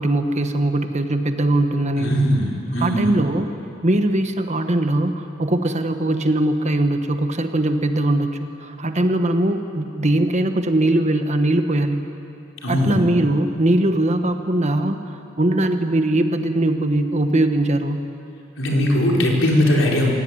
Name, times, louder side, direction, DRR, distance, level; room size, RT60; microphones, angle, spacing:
voice 1, 0.0-2.1 2.8-3.5 3.8-12.0 12.7-18.0, right 1 dB, 35° right, 7 dB, 1.3 m, -20 dB
voice 2, 2.0-3.1 12.6-13.0 18.6-20.1, equal, 75° left, -1 dB, 4.5 m, -19 dB
26.0 x 16.5 x 9.7 m, 2.8 s
head